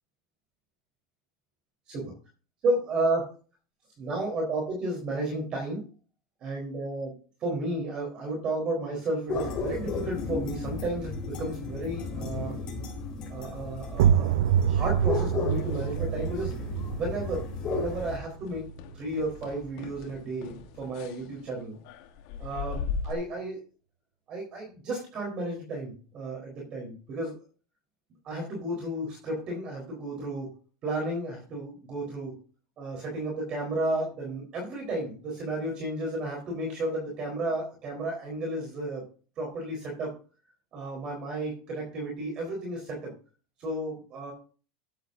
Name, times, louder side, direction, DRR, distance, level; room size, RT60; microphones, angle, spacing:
voice 1, 2.6-3.3 4.0-5.9 6.4-7.1 7.4-12.6 13.3-16.5 17.0-17.4 17.7-18.7 18.9-21.8 22.4-23.6 24.3-27.4 28.2-30.5 30.8-32.4 32.8-39.0 39.4-40.2 40.7-43.1 43.6-44.3, right 2 dB, 35° right, 0 dB, 4.0 m, -32 dB
sound 1, 9.3-18.2, left 4 dB, 30° left, 4.6 m, -34 dB
sound 2, 13.9-19.5, right 9 dB, 80° right, 0.4 m, -27 dB
sound 3, 15.1-16.5 16.8-17.1 17.5-17.6 18.1-23.1, left 6 dB, 60° left, 1.5 m, -39 dB
13.5 x 10.0 x 2.7 m, 0.37 s
supercardioid pair, 150°, 3 cm